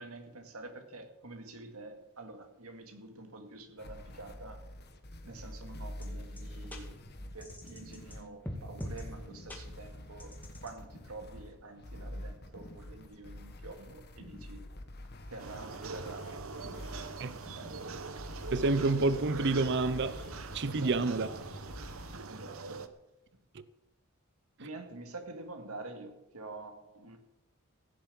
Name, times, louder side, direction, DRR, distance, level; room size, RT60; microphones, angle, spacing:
voice 1, 0.0-4.7 5.2-14.7 15.3-18.4 20.7-20.9 21.4-21.6 22.1-22.9 23.3-23.4 24.6-27.2, right 2 dB, 85° right, 2.2 m, -48 dB
sound 1, 3.8-22.2, left 1 dB, 50° left, 1.5 m, -46 dB
sound 2, 6.0-6.1 6.4-6.5 6.7-6.8 7.4-8.2 8.5-9.0 9.5-9.6 10.2-10.7, equal, 10° left, 2.2 m, -42 dB
sound 3, 15.4-22.9, right 4 dB, 70° right, 1.0 m, -43 dB
voice 2, 18.5-20.2 20.5-21.3 23.5-23.6, right 3 dB, 55° right, 0.6 m, -28 dB
16.0 x 7.5 x 8.6 m
head